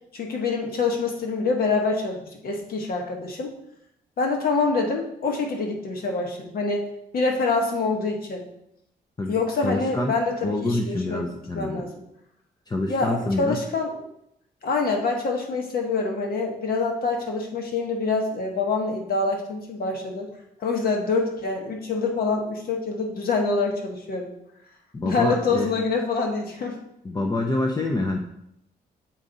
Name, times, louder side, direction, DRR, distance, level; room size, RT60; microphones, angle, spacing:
voice 1, 0.1-3.5 4.2-8.5 9.3-12.0 12.9-14.0 14.6-20.3 20.6-24.3 25.0-26.8, left 3 dB, 65° left, 1 dB, 1.4 m, -26 dB
voice 2, 9.6-10.1 10.4-11.8 12.7-13.6 24.9-25.7 27.0-28.2, left 2 dB, 25° left, 2 dB, 0.7 m, -26 dB
7.4 x 4.9 x 4.0 m, 0.77 s
cardioid pair, 120°, 17 cm